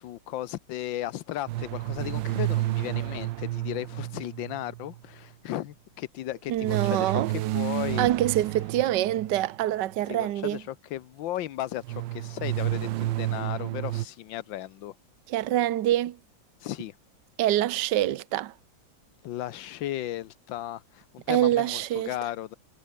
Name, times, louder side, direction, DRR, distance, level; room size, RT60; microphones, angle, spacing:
voice 1, 0.0-8.1 10.1-14.9 16.6-16.9 19.2-22.6, left 13 dB, 85° left, 1.6 m, -35 dB
sound 1, 1.5-5.0 6.6-9.7 11.8-14.1, right 16 dB, 85° right, 1.3 m, -30 dB
voice 2, 6.5-7.3 8.0-10.6 15.3-16.2 17.4-18.5 21.3-22.1, right 13 dB, 70° right, 1.5 m, -25 dB
omnidirectional pair, 2.0 m